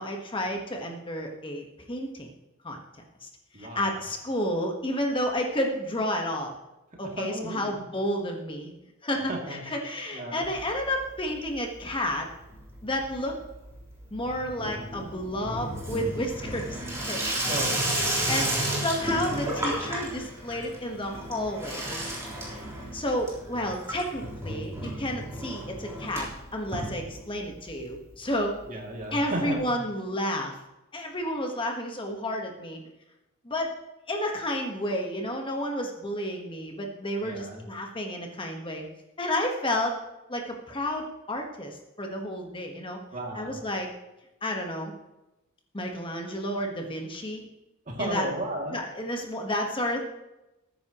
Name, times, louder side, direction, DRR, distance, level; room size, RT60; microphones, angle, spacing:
voice 1, 0.0-2.3 2.6-2.8 3.2-3.3 3.6-6.5 7.0-8.7 9.0-12.3 12.8-13.4 14.1-16.8 17.1-17.6 18.0-21.8 22.5-22.7 22.9-28.5 29.1-30.6 30.9-32.8 33.4-33.7 34.1-38.9 39.2-40.0 40.3-43.0 43.3-43.9 44.4-44.9 45.7-47.4 48.0-48.3 48.7-50.0, left 1 dB, 25° left, 2 dB, 1.3 m, -31 dB
voice 2, 3.5-3.9 7.2-7.8 9.3-9.6 10.1-10.5 17.5-18.0 23.7-23.8 28.7-29.7 37.2-37.7 43.1-43.7 47.9-48.8, right 1 dB, 35° right, 0 dB, 2.5 m, -34 dB
Water tap faucet / Sink (filling or washing), 10.4-11.2 11.5-12.0 12.3-27.6 27.9-28.0 28.2-28.3 28.5-28.6 29.7-29.8, right 1 dB, 15° right, 3.7 m, -33 dB
19.5 x 9.5 x 3.0 m, 0.97 s
head